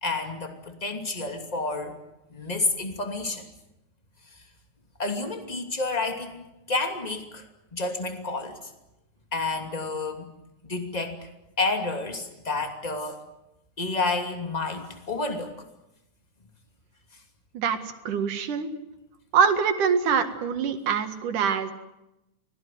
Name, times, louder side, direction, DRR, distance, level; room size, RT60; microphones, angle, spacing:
voice 1, 0.0-2.0 2.3-3.5 5.0-7.4 7.7-8.6 9.3-10.3 10.6-11.2 11.6-13.2 13.8-15.5, left 3 dB, 15° left, 5 dB, 2.4 m, -30 dB
voice 2, 18.0-18.7 19.3-21.7, right 6 dB, 80° right, 8 dB, 3.3 m, -24 dB
24.5 x 17.5 x 9.4 m, 0.91 s
omnidirectional pair, 3.6 m